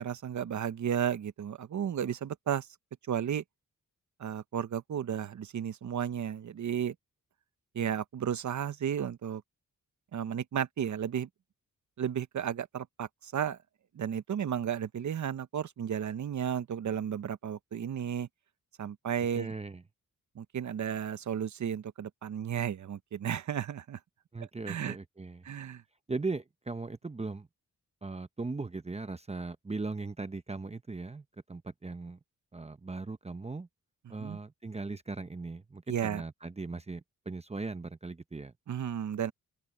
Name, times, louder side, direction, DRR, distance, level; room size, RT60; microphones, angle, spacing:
voice 1, 0.0-2.7 3.1-3.4 4.2-6.9 7.7-9.4 10.1-11.3 12.0-13.6 13.9-18.3 18.8-19.5 20.4-24.0 24.4-25.0 25.4-25.8 34.2-34.4 35.9-36.2 38.7-39.3, right 9 dB, 60° right, 0.9 m, -33 dB
voice 2, 19.3-19.8 24.3-25.4 26.1-27.5 28.0-32.2 32.5-33.7 34.1-38.5, right 3 dB, 20° right, 0.8 m, -38 dB
open air
cardioid pair, 85°, 33 cm